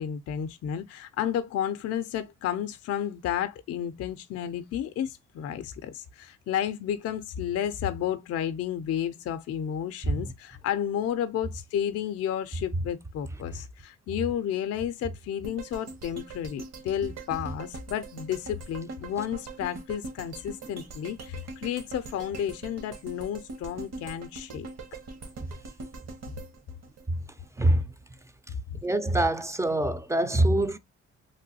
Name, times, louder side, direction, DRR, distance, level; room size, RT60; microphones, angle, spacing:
voice 1, 0.0-24.7 28.7-28.8, left 9 dB, 55° left, 0.4 m, -32 dB
sound 1, 15.4-27.6 28.0-28.1, right 3 dB, 55° right, 0.9 m, -42 dB
voice 2, 28.8-30.8, right 1 dB, 10° right, 0.3 m, -24 dB
3.1 x 2.2 x 2.6 m
cardioid pair, 90°, 30 cm